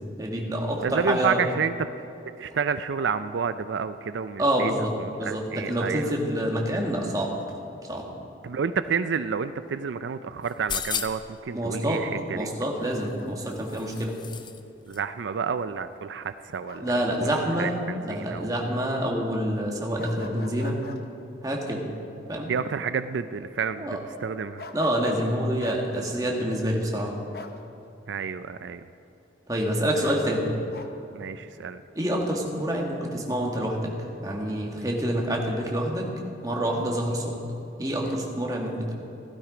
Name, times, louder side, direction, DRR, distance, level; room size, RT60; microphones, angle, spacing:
voice 1, 0.2-1.4 4.4-4.9 5.2-7.3 7.9-8.0 11.5-12.0 12.3-14.1 16.8-20.8 21.4-21.8 22.3-22.5 23.8-24.0 24.7-27.1 29.5-30.4 31.9-33.9 34.2-36.1 36.4-37.3 37.8-38.9, equal, 20° right, -1 dB, 1.7 m, -27 dB
voice 2, 0.8-1.9 2.4-6.1 8.4-12.5 14.9-18.5 22.4-24.7 28.1-28.8 31.1-31.8, right 6 dB, 85° right, 12 dB, 0.4 m, -30 dB
sound 1, 10.4-11.4 12.9-14.6 14.9-15.0, left 7 dB, 25° left, 0.5 m, -34 dB
Bark, 12.8-13.8 16.7-17.3 17.6-17.8 20.0-21.0 24.6-25.2 25.6-25.8 27.3-27.6 30.0-30.9, left 3 dB, 55° left, 0.8 m, -42 dB
15.5 x 12.0 x 5.0 m, 2.8 s
head